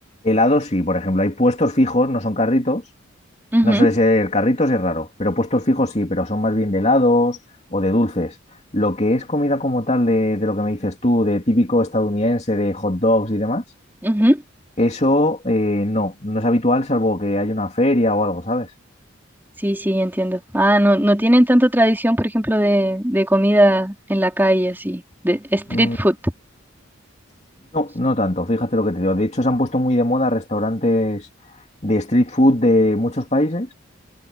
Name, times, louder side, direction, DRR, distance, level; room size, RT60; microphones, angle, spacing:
voice 1, 0.2-2.8 3.6-7.4 7.7-8.3 8.7-13.6 14.8-18.7 25.7-26.0 27.7-31.3 31.8-33.7, left 1 dB, 35° left, 2.9 m, -19 dB
voice 2, 3.5-3.9 14.0-14.4 19.6-26.3, equal, 10° right, 4.2 m, -18 dB
head